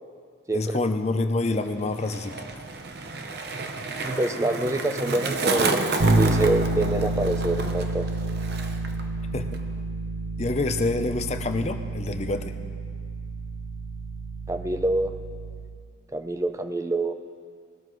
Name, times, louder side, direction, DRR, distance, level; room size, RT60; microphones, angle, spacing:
voice 1, 0.5-2.4 9.3-9.6 10.4-12.6, left 2 dB, 35° left, 8 dB, 0.6 m, -27 dB
Skateboard, 1.5-9.0 9.3-9.8, right 3 dB, 50° right, 0.8 m, -31 dB
voice 2, 4.0-8.1 14.5-15.1 16.1-17.1, right 2 dB, 15° right, 8 dB, 0.5 m, -26 dB
Bass guitar, 6.0-15.9, right 2 dB, 75° right, 0.9 m, -29 dB
20.5 x 12.5 x 3.1 m, 2.1 s
head